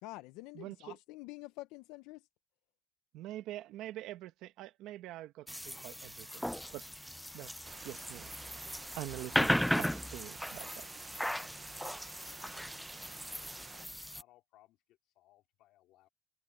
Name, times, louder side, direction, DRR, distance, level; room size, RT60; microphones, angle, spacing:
voice 1, 0.0-2.2, left 19 dB, 70° left, 0.6 m, -47 dB
voice 2, 0.5-1.0 3.1-6.9 7.3-7.5 7.8-8.3 9.0-9.5 9.8-10.9, right 14 dB, 55° right, 1.3 m, -45 dB
sound 1, 5.5-14.2, equal, ahead, 0.4 m, -37 dB
sound 2, 7.6-13.9, right 4 dB, 15° right, 0.8 m, -51 dB
voice 3, 13.1-14.8 15.1-16.1, left 15 dB, 55° left, 3.3 m, -65 dB
cardioid pair, 170°, 0 cm